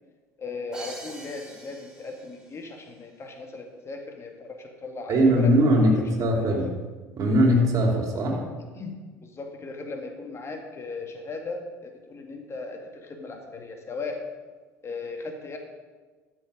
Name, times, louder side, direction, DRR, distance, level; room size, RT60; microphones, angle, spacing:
voice 1, 0.4-5.6 6.2-6.6 8.7-14.3 14.8-15.6, left 3 dB, 30° left, 3 dB, 1.9 m, -37 dB
Crash cymbal, 0.7-2.6, right 2 dB, 10° right, 3.1 m, -44 dB
voice 2, 5.1-6.7 7.1-8.4, equal, 40° right, 1 dB, 3.0 m, -21 dB
13.5 x 6.4 x 5.1 m, 1.3 s
hypercardioid pair, 70°, 9 cm